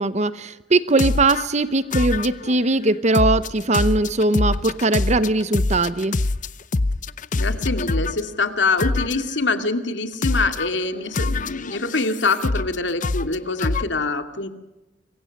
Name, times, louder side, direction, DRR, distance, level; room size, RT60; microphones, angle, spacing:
voice 1, 0.0-6.2, right 2 dB, 40° right, 14 dB, 0.8 m, -20 dB
sound 1, 1.0-1.5 1.9-2.6 3.1-8.2 8.8-9.4 10.2-10.7 11.1-12.8 13.0-13.9, left 2 dB, 45° left, 0.7 m, -24 dB
voice 2, 7.3-14.5, left 3 dB, 75° left, 8 dB, 2.3 m, -24 dB
26.5 x 23.5 x 6.6 m, 1.0 s
head